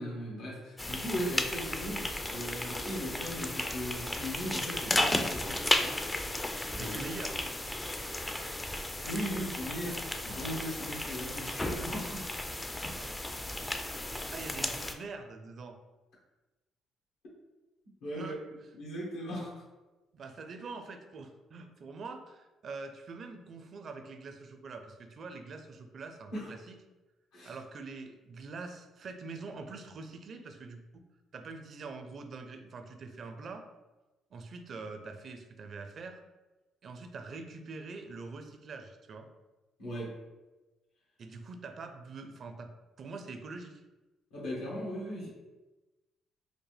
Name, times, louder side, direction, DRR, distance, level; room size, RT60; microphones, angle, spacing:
voice 1, 0.0-6.0 6.6-7.0 9.0-12.3 18.0-19.6 26.3-26.5 27.3-27.5 39.8-40.2 44.3-45.3, equal, 85° left, -5 dB, 1.5 m, -38 dB
sound 1, 0.8-14.9, left 1 dB, 15° left, 0.4 m, -34 dB
voice 2, 6.8-7.4 12.8-13.1 14.3-15.8 18.1-18.4 20.1-26.8 27.4-31.0 31.3-33.7 34.3-36.2 36.8-39.3 41.2-42.7 43.0-43.8, right 4 dB, 55° right, 7 dB, 0.5 m, -44 dB
5.0 x 2.1 x 3.3 m, 1.1 s
supercardioid pair, 75°, 0 cm